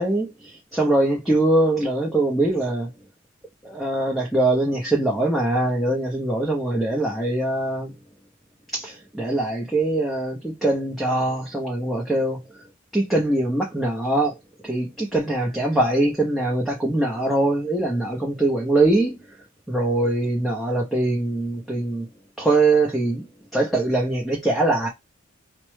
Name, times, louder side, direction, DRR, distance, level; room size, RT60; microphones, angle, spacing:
voice 1, 0.0-2.9 3.6-7.9 8.7-12.4 12.9-14.4 14.6-19.2 19.7-22.1 22.4-23.2 23.5-24.9, right 2 dB, ahead, 0.6 m, -22 dB
4.3 x 2.0 x 3.1 m
head